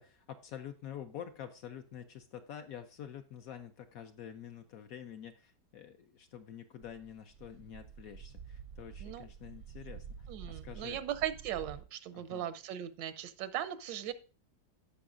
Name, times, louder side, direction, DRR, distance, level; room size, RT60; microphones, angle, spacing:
voice 1, 0.0-11.0 12.1-12.5, left 9 dB, 70° left, 8 dB, 0.9 m, -48 dB
sound 1, 6.8-11.8, right 7 dB, 70° right, 0.8 m, -49 dB
voice 2, 10.3-14.1, right 11 dB, 90° right, 13 dB, 1.4 m, -38 dB
15.5 x 5.5 x 2.5 m, 0.36 s
omnidirectional pair, 1.9 m